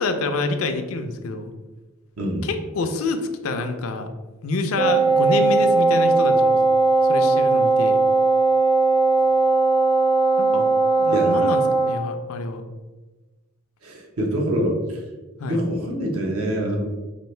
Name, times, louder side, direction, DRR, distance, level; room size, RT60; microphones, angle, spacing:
voice 1, 0.0-1.5 2.4-4.1 4.4-6.6 7.0-8.0 10.4-10.7 11.0-12.6 15.4-15.6, left 3 dB, 70° left, 7 dB, 0.4 m, -27 dB
voice 2, 2.2-2.5 11.1-11.4 13.8-15.0 15.4-16.8, equal, 75° right, 0 dB, 0.8 m, -25 dB
Wind instrument woodwind instrument, 4.8-12.1, right 3 dB, 20° right, 0.4 m, -18 dB
4.4 x 2.5 x 3.2 m, 1.2 s
head